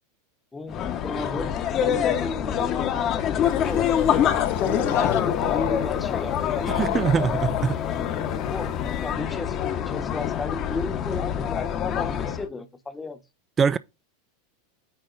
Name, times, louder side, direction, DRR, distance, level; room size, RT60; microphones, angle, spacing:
voice 1, 0.5-3.9 4.6-7.3 8.5-9.6 9.9-13.2, left 3 dB, 15° left, 1.1 m, -34 dB
sound 1, 0.7-12.5, left 9 dB, 40° left, 1.1 m, -26 dB
sound 2, 3.4-9.1, left 12 dB, 65° left, 0.7 m, -32 dB
voice 2, 6.7-7.8 13.6-13.8, right 6 dB, 25° right, 0.3 m, -23 dB
9.1 x 4.1 x 4.0 m
hypercardioid pair, 95°, 0 cm